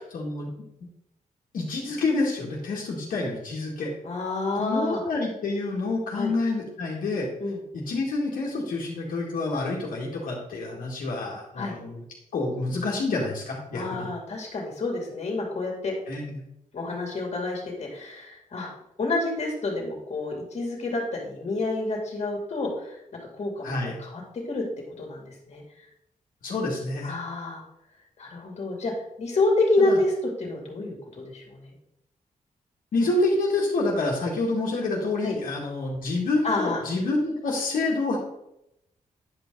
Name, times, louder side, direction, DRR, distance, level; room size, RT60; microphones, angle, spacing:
voice 1, 0.1-0.5 1.5-3.9 4.5-7.3 7.7-12.0 12.3-14.1 16.1-16.4 23.6-24.0 26.4-27.1 29.8-30.0 32.9-38.2, left 2 dB, 90° left, -4 dB, 2.1 m, -28 dB
voice 2, 4.0-5.0 6.2-6.3 7.4-7.6 11.6-11.8 13.7-15.9 16.7-18.7 19.0-23.0 23.3-24.2 24.5-24.6 25.0-25.6 27.0-27.6 28.2-28.9 29.2-30.1 30.4-31.7 35.2-35.3 36.4-36.8, left 2 dB, 50° left, 0 dB, 2.6 m, -28 dB
10.0 x 5.3 x 3.9 m, 0.81 s
wide cardioid pair, 125°, 14 cm